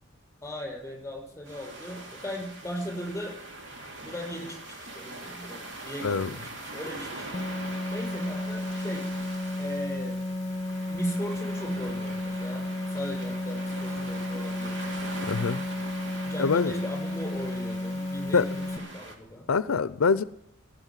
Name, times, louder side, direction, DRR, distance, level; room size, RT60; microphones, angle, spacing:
voice 1, 0.4-3.4 4.0-7.2 7.9-9.1 9.6-10.2 10.9-14.8 16.2-18.6 18.9-19.5, equal, 10° left, 6.0 m, -38 dB
sound 1, 1.4-19.1, right 2 dB, 60° right, 3.0 m, -42 dB
voice 2, 6.0-6.4 15.3-15.6 16.4-16.7 18.3-18.4 19.5-20.2, left 5 dB, 90° left, 0.5 m, -24 dB
sound 2, 7.3-18.8, left 1 dB, 30° left, 0.7 m, -33 dB
16.5 x 7.9 x 9.9 m
head